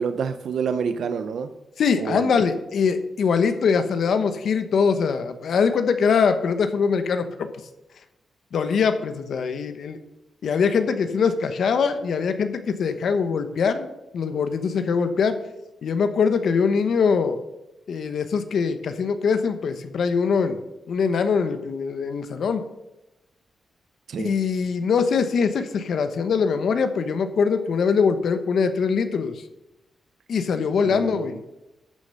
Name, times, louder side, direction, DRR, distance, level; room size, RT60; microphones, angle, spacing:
voice 1, 0.0-1.5 2.0-2.4 24.1-24.3 30.8-31.4, right 6 dB, 75° right, 9 dB, 0.7 m, -28 dB
voice 2, 1.8-7.5 8.5-10.0 10.4-15.4 15.8-17.4 17.9-20.6 20.9-22.6 24.2-29.4 30.3-31.4, left 5 dB, 70° left, 9 dB, 1.0 m, -22 dB
13.0 x 6.6 x 5.6 m, 0.96 s
cardioid pair, 110°, 0 cm